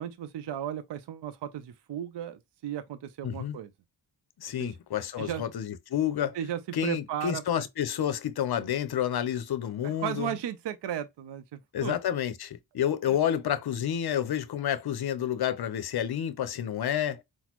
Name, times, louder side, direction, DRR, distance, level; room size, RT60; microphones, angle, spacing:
voice 1, 0.0-3.7 4.6-4.7 5.2-5.4 6.3-7.7 9.8-11.9 13.1-13.2, right 10 dB, 60° right, 0.5 m, -35 dB
voice 2, 3.2-3.6 4.4-6.4 6.7-10.3 11.7-17.2, left 10 dB, 50° left, 0.6 m, -29 dB
4.0 x 2.1 x 2.9 m
cardioid pair, 50°, 49 cm